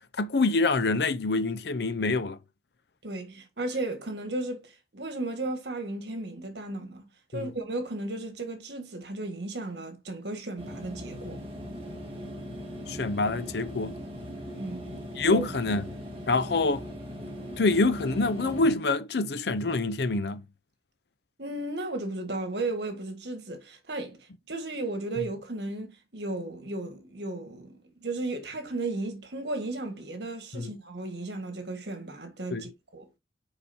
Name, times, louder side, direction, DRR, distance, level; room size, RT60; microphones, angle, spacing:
voice 1, 0.2-2.4 7.3-7.5 12.9-14.0 15.2-15.8 16.3-16.9 17.6-20.4 30.5-30.7 32.5-32.7, left 3 dB, 65° left, 0.6 m, -26 dB
voice 2, 3.0-7.0 7.3-11.4 14.5-14.9 15.3-15.4 21.4-33.1, right 2 dB, 65° right, 1.6 m, -35 dB
sound 1, 10.6-18.7, equal, 30° right, 2.0 m, -39 dB
6.9 x 5.1 x 2.7 m
head